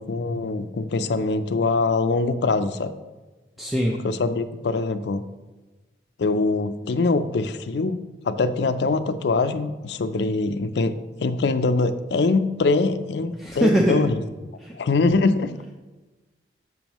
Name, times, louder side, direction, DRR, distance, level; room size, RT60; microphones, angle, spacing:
voice 1, 0.0-2.9 4.0-5.2 6.2-8.0 8.2-10.9 11.2-14.2 14.7-15.5, left 3 dB, 75° left, 11 dB, 0.4 m, -23 dB
voice 2, 3.6-4.0 13.4-14.0 14.6-14.7, right 1 dB, ahead, -3 dB, 0.5 m, -21 dB
7.1 x 6.2 x 3.0 m, 1.2 s
head